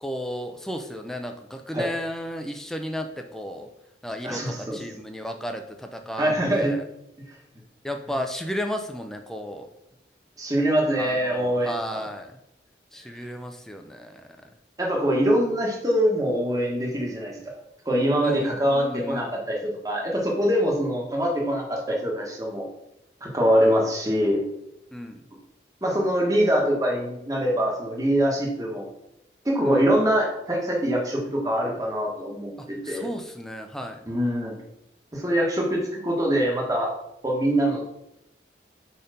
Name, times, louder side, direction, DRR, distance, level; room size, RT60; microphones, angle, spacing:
voice 1, 0.0-3.7 4.0-6.8 7.8-9.7 10.9-12.4 12.9-14.2 18.2-19.2 23.6-23.8 24.9-25.2 29.6-29.8 32.6-34.0, equal, ahead, 4 dB, 0.4 m, -34 dB
voice 2, 4.2-4.8 6.2-6.7 10.4-12.0 14.8-17.4 17.8-22.7 23.2-24.4 25.8-28.8 29.4-33.1 34.1-34.6 35.1-36.9 37.2-38.0, equal, 20° right, -1 dB, 1.3 m, -24 dB
5.2 x 4.4 x 5.0 m, 0.83 s
head